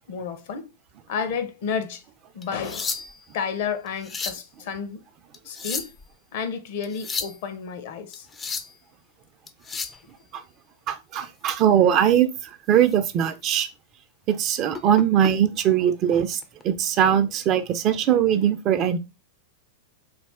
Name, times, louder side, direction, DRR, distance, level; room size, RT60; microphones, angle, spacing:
voice 1, 0.1-0.7 1.1-2.0 2.3-3.0 3.3-5.0 5.4-5.9 6.3-8.3, left 6 dB, 60° left, 0.7 m, -31 dB
sound 1, 2.4-3.3 3.9-4.5 5.3-6.1 6.8-7.4 8.1-8.8 9.5-10.0 12.0-12.2 12.7-12.9 13.4-13.5 14.7-15.3 16.4-16.6, left 4 dB, 20° left, 0.4 m, -33 dB
voice 2, 10.9-13.7 14.3-19.0, right 9 dB, 40° right, 0.5 m, -21 dB
3.3 x 2.3 x 3.4 m
hypercardioid pair, 105°, 0 cm